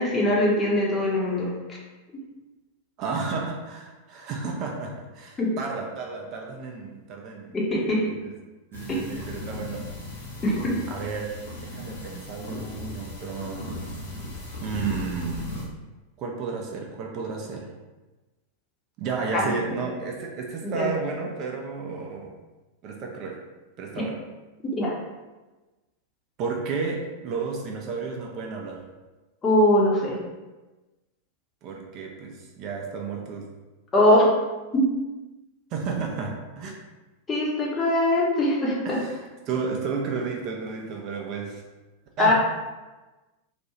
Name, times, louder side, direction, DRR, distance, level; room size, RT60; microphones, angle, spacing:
voice 1, 0.0-1.5 5.4-5.5 7.5-8.0 8.9-9.0 10.4-10.8 19.3-19.4 20.6-20.9 24.7-24.9 29.4-30.2 33.9-34.3 34.7-34.9 37.3-39.0 42.2-42.3, left 1 dB, 20° left, -4 dB, 0.7 m, -21 dB
voice 2, 3.0-8.3 8.7-9.9 10.9-13.7 14.6-15.6 16.2-17.7 19.0-22.3 22.8-23.4 23.8-24.2 26.4-28.8 31.6-33.5 35.7-36.7 38.8-41.6 42.2-42.3, right 5 dB, 40° right, 0 dB, 0.4 m, -32 dB
sound 1, 8.7-15.6, left 2 dB, 70° left, 0.7 m, -37 dB
2.4 x 2.2 x 2.8 m, 1.2 s
figure-of-eight pair, 90°, 0 cm